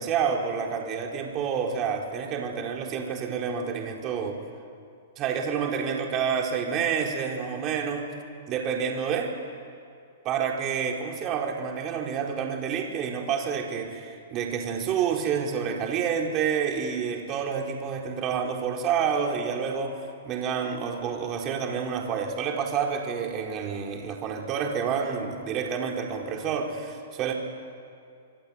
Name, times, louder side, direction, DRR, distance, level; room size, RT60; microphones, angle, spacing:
voice 1, 0.0-4.4 5.2-8.1 8.5-9.4 10.2-27.3, right 7 dB, 30° right, 1 dB, 4.5 m, -29 dB
26.5 x 23.5 x 8.9 m, 2.4 s
hypercardioid pair, 135°, 0 cm